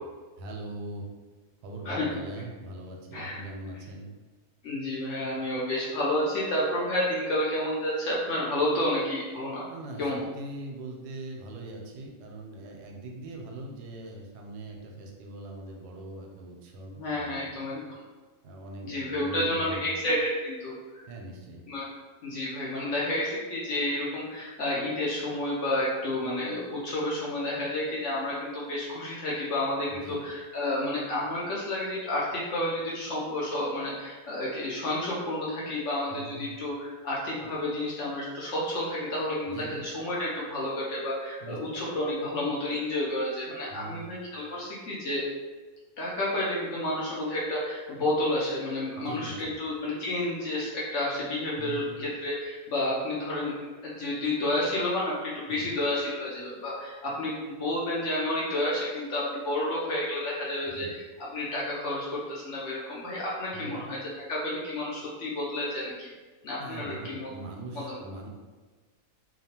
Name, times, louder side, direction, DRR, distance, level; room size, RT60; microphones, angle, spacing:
voice 1, 0.4-1.0 1.6-4.1 9.7-17.6 18.4-20.0 21.1-21.6 29.9-30.2 36.1-36.4 39.5-39.8 41.4-41.6 43.7-44.1 49.0-49.5 51.6-51.9 55.5-55.7 60.7-60.9 63.5-63.8 66.6-68.3, right 2 dB, 85° right, 1 dB, 1.1 m, -41 dB
voice 2, 1.8-2.2 3.1-3.4 4.6-9.7 10.0-10.2 16.9-18.0 18.8-21.1 21.7-21.9 22.2-45.2 46.0-53.5 53.8-64.0 64.3-66.1 66.4-67.3 67.7-68.0, left 1 dB, 65° left, -6 dB, 0.8 m, -30 dB
2.9 x 2.1 x 2.8 m, 1.4 s
omnidirectional pair, 1.7 m